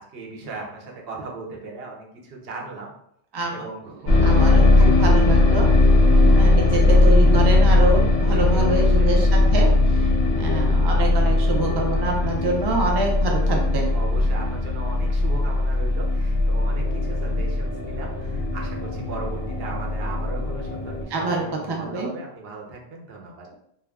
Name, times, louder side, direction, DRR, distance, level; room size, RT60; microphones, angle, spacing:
voice 1, 0.0-2.9 3.5-5.1 8.3-9.1 10.2-10.7 12.4-12.7 13.9-23.5, right 3 dB, 70° right, -1 dB, 0.9 m, -38 dB
voice 2, 3.3-3.6 4.2-5.7 6.2-9.7 10.3-13.9 17.3-17.4 21.1-22.1, right 2 dB, 40° right, 0 dB, 0.3 m, -26 dB
sound 1, 4.1-21.0, left 2 dB, 55° left, 0.5 m, -19 dB
sound 2, 15.6-21.9, right 1 dB, 20° right, 0.9 m, -41 dB
2.3 x 2.1 x 3.4 m, 0.73 s
omnidirectional pair, 1.0 m